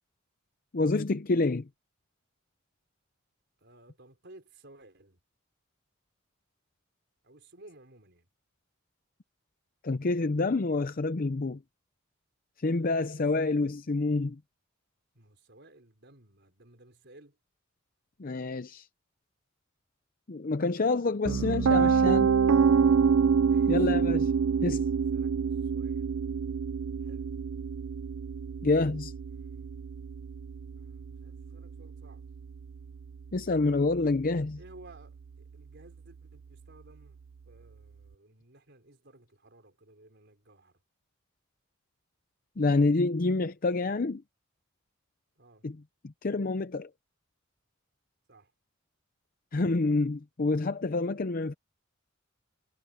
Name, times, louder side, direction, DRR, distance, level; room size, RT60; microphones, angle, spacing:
voice 1, 0.7-1.7 9.8-11.6 12.6-14.4 18.2-18.9 20.3-22.3 23.7-24.3 24.6-24.8 28.6-29.1 33.3-34.6 42.6-44.2 45.6-45.8 46.0-46.9 49.5-51.5, left 3 dB, 45° left, 0.6 m, -27 dB
voice 2, 3.6-5.2 7.2-8.3 12.6-13.8 15.1-17.4 23.4-24.1 25.1-26.2 27.0-27.4 29.3-29.8 30.6-32.3 33.4-33.6 34.5-37.2 37.4-40.8 45.4-45.7 48.3-48.5, right 2 dB, 60° right, 5.0 m, -56 dB
Piano, 21.2-33.2, right 6 dB, 75° right, 0.5 m, -27 dB
head